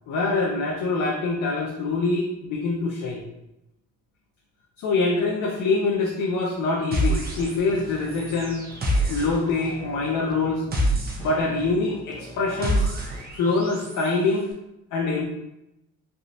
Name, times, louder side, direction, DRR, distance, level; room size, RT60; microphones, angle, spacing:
voice 1, 0.1-3.2 4.8-8.6 9.1-10.6 11.2-12.9 13.3-14.5 14.9-15.2, left 3 dB, 80° left, -2 dB, 0.6 m, -24 dB
sound 1, 6.9-7.8 8.1-14.1, right 1 dB, 30° right, 0.7 m, -28 dB
sound 2, 7.3-13.3, left 2 dB, 15° left, 0.4 m, -44 dB
3.4 x 2.7 x 2.5 m, 0.89 s
cardioid pair, 90°, 30 cm